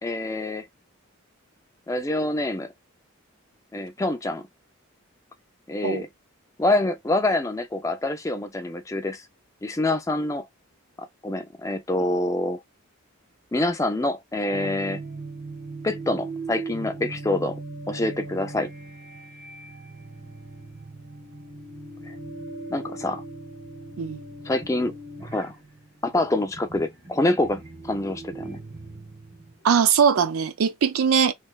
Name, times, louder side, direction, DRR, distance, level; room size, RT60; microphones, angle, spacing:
voice 1, 0.0-0.7 1.9-2.7 3.7-4.4 5.7-6.1 6.6-9.2 9.6-10.5 11.0-12.6 13.5-15.0 15.8-17.6 17.9-18.7 22.1-22.2 22.7-23.2 24.5-24.9 25.2-25.6 26.0-27.6 27.9-28.6, left 2 dB, 15° left, 0.3 m, -26 dB
sound 1, 14.5-29.6, right 3 dB, 45° right, 1.9 m, -39 dB
voice 2, 29.6-31.3, right 7 dB, 90° right, 0.5 m, -20 dB
3.2 x 2.6 x 2.2 m
head